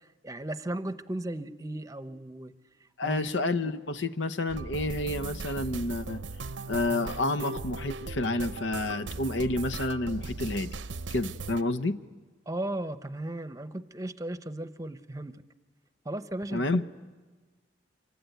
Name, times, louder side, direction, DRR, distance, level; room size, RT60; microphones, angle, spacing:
voice 1, 0.2-2.5 3.0-3.3 12.5-15.4 16.0-16.8, right 1 dB, 20° right, 11 dB, 0.8 m, -36 dB
voice 2, 3.0-6.2 6.7-10.7 11.1-12.0 16.5-16.8, left 2 dB, 90° left, 11 dB, 1.0 m, -29 dB
sound 1, 4.5-11.6, right 3 dB, 90° right, 0.7 m, -38 dB
26.0 x 24.0 x 9.2 m, 1.4 s
head